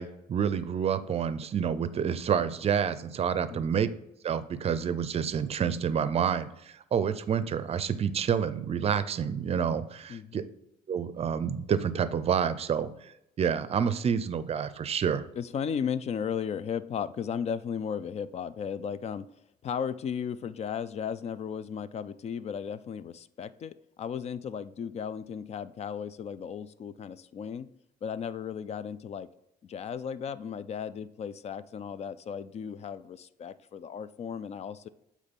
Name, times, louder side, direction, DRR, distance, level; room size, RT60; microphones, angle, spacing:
voice 1, 0.0-3.9 4.2-10.4 10.9-12.9 13.4-15.2, right 7 dB, 35° right, 13 dB, 0.5 m, -28 dB
voice 2, 15.4-19.3 19.6-27.7 28.0-29.3 29.6-34.9, left 7 dB, 40° left, 16 dB, 0.4 m, -35 dB
7.9 x 3.1 x 5.3 m, 0.82 s
cardioid pair, 110°, 17 cm